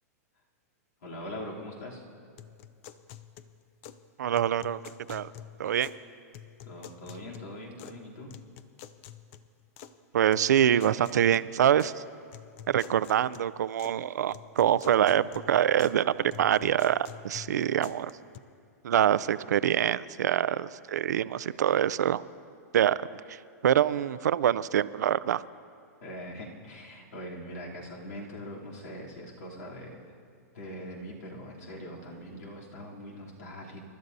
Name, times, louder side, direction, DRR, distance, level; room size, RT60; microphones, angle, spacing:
voice 1, 1.0-2.0 6.6-8.3 26.0-30.1 30.5-33.8, equal, 70° left, -3 dB, 3.1 m, -42 dB
sound 1, 2.4-4.1 4.3-6.1 6.3-8.0 8.3-9.9 10.3-12.0 12.3-14.0 14.3-16.0 16.3-18.4, left 10 dB, 45° left, 0.6 m, -48 dB
voice 2, 4.2-4.8 5.1-5.3 5.6-5.9 10.1-11.9 12.7-18.1 18.8-22.2 22.7-23.0 23.3-23.4 23.6-25.4, right 10 dB, 85° right, 17 dB, 0.4 m, -25 dB
28.0 x 12.5 x 2.7 m, 2.3 s
hypercardioid pair, 135°, 9 cm